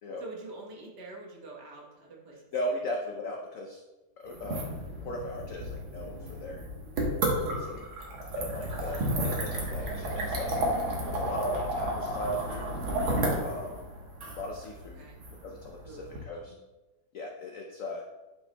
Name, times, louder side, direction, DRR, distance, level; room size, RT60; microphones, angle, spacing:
voice 1, 0.2-2.4 2.7-2.8 8.7-9.1 15.0-15.2 15.8-16.6, right 2 dB, 60° right, -3 dB, 1.8 m, -46 dB
voice 2, 2.5-3.8 4.2-6.6 7.5-7.9 8.4-10.6 11.1-12.7 13.4-13.8 14.4-16.5 17.1-18.1, left 1 dB, 70° left, 1 dB, 0.7 m, -37 dB
sound 1, 4.3-16.2, right 1 dB, 85° right, 2.0 m, -32 dB
9.8 x 5.4 x 2.2 m, 1.1 s
omnidirectional pair, 2.1 m